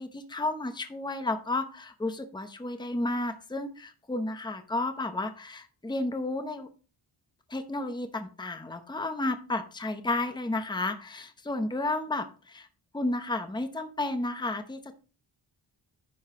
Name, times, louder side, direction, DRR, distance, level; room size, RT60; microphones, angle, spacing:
voice 1, 0.0-6.7 7.5-12.7 12.9-14.9, left 2 dB, 10° left, 8 dB, 0.8 m, -32 dB
10.5 x 5.5 x 3.7 m, 0.37 s
wide cardioid pair, 90°, 48 cm